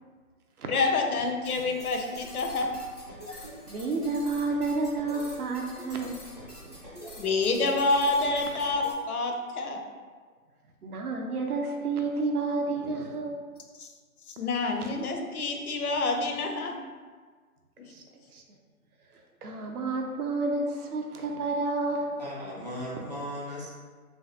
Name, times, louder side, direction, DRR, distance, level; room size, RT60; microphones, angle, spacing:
voice 1, 0.7-2.7 7.2-9.8 13.8-13.9 14.3-16.8, left 3 dB, 80° left, 3 dB, 0.6 m, -27 dB
sound 1, 1.4-8.9, equal, 30° left, 0.4 m, -45 dB
voice 2, 3.7-6.7 10.8-13.4 17.9-18.0 18.3-18.4 19.4-22.2 23.0-23.1, right 3 dB, 90° right, 2 dB, 0.6 m, -30 dB
voice 3, 22.2-23.7, equal, 30° right, -6 dB, 0.5 m, -37 dB
3.2 x 2.2 x 2.7 m, 1.5 s
figure-of-eight pair, 150°, 44 cm